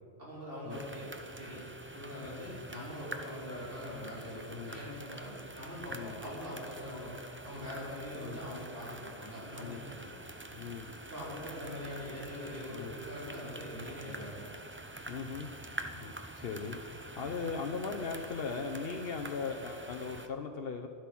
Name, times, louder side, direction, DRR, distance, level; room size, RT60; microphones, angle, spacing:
voice 1, 0.2-1.1 1.3-1.6 1.9-7.1 7.4-10.1 11.1-14.5, left 1 dB, 65° right, -7 dB, 4.8 m, -43 dB
sound 1, 0.7-20.3, right 1 dB, 15° right, 0.6 m, -46 dB
voice 2, 4.5-4.8 5.9-6.2 8.1-8.4 9.6-9.9 10.5-10.9 12.7-13.0 15.1-15.5 15.8-20.9, left 5 dB, 70° left, 4 dB, 1.0 m, -39 dB
13.0 x 12.0 x 6.0 m, 2.5 s
omnidirectional pair, 1.1 m